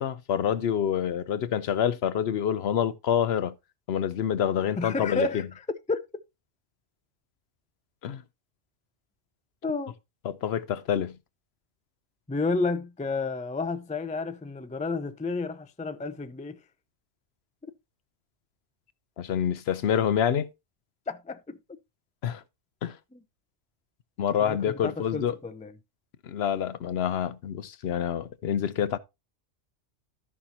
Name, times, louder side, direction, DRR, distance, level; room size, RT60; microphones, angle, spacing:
voice 1, 0.0-3.5 3.9-5.3 8.0-8.2 10.2-11.2 19.2-20.5 22.2-22.4 22.8-23.0 24.2-25.4 26.2-29.0, left 9 dB, 70° left, 0.9 m, -27 dB
voice 2, 4.8-5.4 5.9-6.1 9.6-9.9 12.3-16.6 21.1-21.6 23.1-23.2 24.5-25.7, left 3 dB, 15° left, 0.3 m, -31 dB
13.5 x 5.7 x 2.8 m
omnidirectional pair, 1.2 m